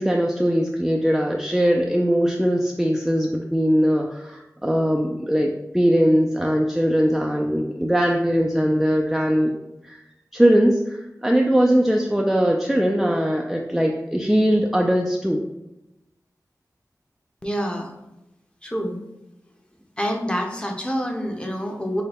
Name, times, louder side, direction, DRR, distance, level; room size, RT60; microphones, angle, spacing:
voice 1, 0.0-9.5 9.8-10.0 10.3-15.4, equal, 5° right, 0 dB, 0.4 m, -20 dB
voice 2, 17.4-17.9 18.6-19.0 20.0-22.0, equal, 15° left, 1 dB, 0.8 m, -27 dB
6.4 x 2.2 x 3.4 m, 0.93 s
wide cardioid pair, 60°, 7 cm